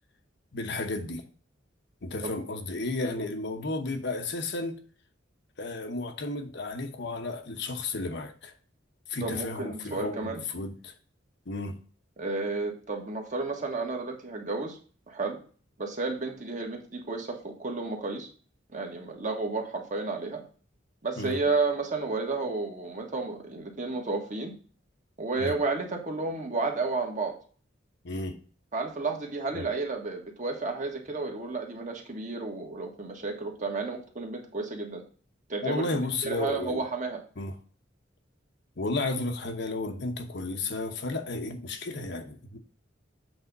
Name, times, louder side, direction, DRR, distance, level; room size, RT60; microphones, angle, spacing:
voice 1, 0.5-1.2 2.0-4.8 5.6-8.5 9.1-10.9 11.5-11.8 21.1-21.4 25.4-25.5 28.0-28.4 29.5-29.7 35.6-36.8 37.4-37.5 38.8-42.6, left 2 dB, 60° left, 1.0 m, -33 dB
voice 2, 9.2-10.4 12.2-14.8 15.1-15.4 15.8-18.3 18.7-20.4 21.0-24.5 25.2-27.3 28.7-35.0 35.5-35.9 36.2-37.2, right 3 dB, 40° right, 1.5 m, -32 dB
7.9 x 3.5 x 5.3 m
head